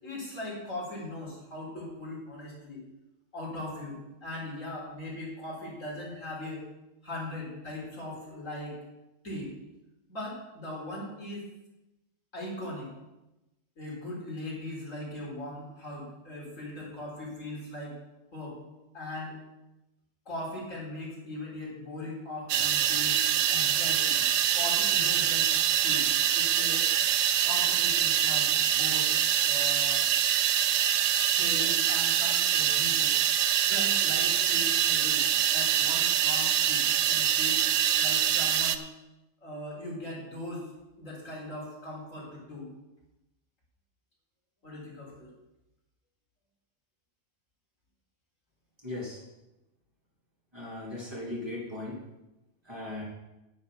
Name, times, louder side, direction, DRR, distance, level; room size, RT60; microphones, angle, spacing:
voice 1, 0.0-2.8 3.3-6.6 7.0-8.8 9.2-9.5 10.1-11.5 12.3-12.9 13.8-18.0 18.3-18.6 18.9-19.4 20.3-24.2 24.5-26.1 26.3-26.9 27.4-29.1 29.4-30.1 31.3-33.1 33.6-37.6 38.0-38.8 39.4-40.7 41.0-42.7 44.6-45.3, left 1 dB, 85° left, -5 dB, 4.6 m, -39 dB
sound 1, 22.5-38.8, right 10 dB, 75° right, 1.0 m, -25 dB
voice 2, 48.8-49.2 50.5-52.0 52.6-53.0, left 2 dB, 20° right, -6 dB, 3.8 m, -37 dB
10.5 x 9.8 x 5.3 m, 0.98 s
omnidirectional pair, 1.3 m